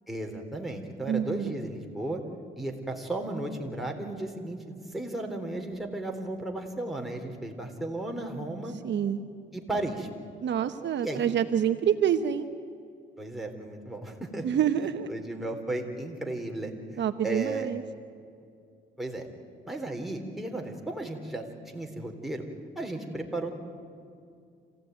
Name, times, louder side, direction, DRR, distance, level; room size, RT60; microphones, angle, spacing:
voice 1, 0.1-2.2 2.6-8.7 9.5-10.1 11.0-11.3 13.2-14.5 14.8-17.7 19.0-19.3 19.7-21.5 21.7-22.4 22.8-23.6, right 2 dB, ahead, 1 dB, 3.6 m, -35 dB
voice 2, 1.1-1.5 8.8-9.2 10.4-12.5 14.4-15.1 17.0-17.8, right 9 dB, 65° right, 8 dB, 1.1 m, -27 dB
27.0 x 16.5 x 9.3 m, 2.4 s
cardioid pair, 90°, 20 cm